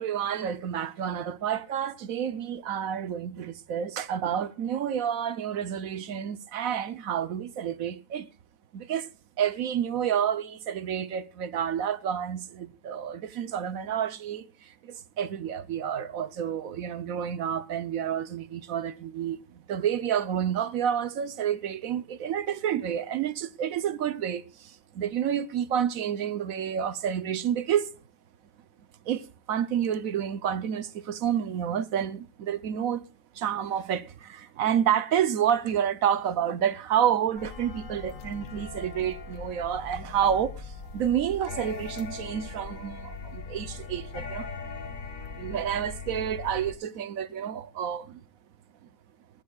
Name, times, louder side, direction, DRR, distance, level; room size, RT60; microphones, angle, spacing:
voice 1, 0.0-8.3 8.7-9.1 9.4-19.4 19.7-27.9 29.0-33.1 33.3-44.5 45.4-48.2, right 9 dB, 60° right, 1.1 m, -29 dB
sound 1, 37.4-46.7, left 4 dB, 50° left, 1.6 m, -40 dB
20.0 x 13.5 x 2.3 m
omnidirectional pair, 1.8 m